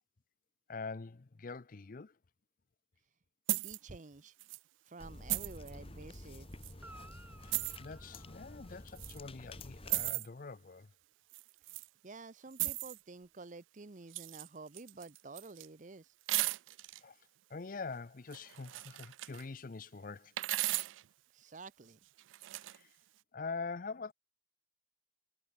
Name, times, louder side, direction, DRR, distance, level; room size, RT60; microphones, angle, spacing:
voice 1, 0.7-2.1 7.4-10.9 17.0-17.2 17.5-20.3 22.7-22.9 23.3-24.1, left 4 dB, 45° left, 0.6 m, -44 dB
sound 1, 3.5-3.8 4.4-4.6 5.3-5.7 6.6-6.7 7.5-7.8 9.0-9.2 9.9-10.3 11.3-11.9 12.5-13.0 14.1-14.5 14.7-15.7 16.3-17.0 18.3-19.4 20.4-21.0 22.2-22.8, right 19 dB, 90° right, 0.3 m, -36 dB
voice 2, 3.6-4.3 4.8-6.5 12.0-16.1 21.3-22.0, right 3 dB, 40° right, 0.7 m, -50 dB
sound 2, 5.0-10.1, left 1 dB, 30° left, 1.8 m, -50 dB
Guitar, 6.8-9.3 13.2-13.3, right 2 dB, 10° right, 5.5 m, -58 dB
head